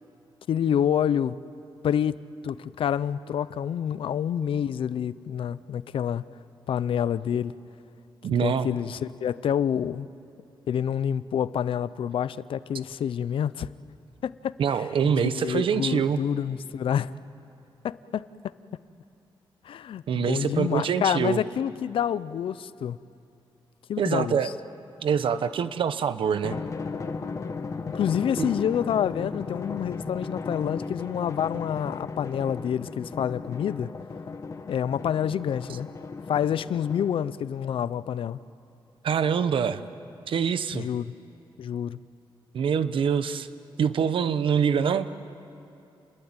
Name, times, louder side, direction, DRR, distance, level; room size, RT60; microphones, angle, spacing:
voice 1, 0.5-1.4 1.8-6.2 6.7-7.5 8.4-10.1 10.7-13.7 14.2-17.1 17.8-18.5 19.6-23.0 23.9-24.5 27.9-33.9 34.7-35.9 36.3-38.4 40.7-41.1 41.6-42.0, left 9 dB, 80° left, 17 dB, 0.6 m, -28 dB
voice 2, 8.2-8.7 14.6-16.2 20.1-21.4 24.0-24.5 25.0-26.6 28.4-28.5 39.0-39.8 40.3-40.9 42.5-43.5 43.8-45.1, right 7 dB, 75° right, 12 dB, 0.9 m, -25 dB
Drum, 26.4-37.4, left 4 dB, 35° left, 1.1 m, -36 dB
29.0 x 21.5 x 8.9 m, 2.7 s
wide cardioid pair, 175°, 9 cm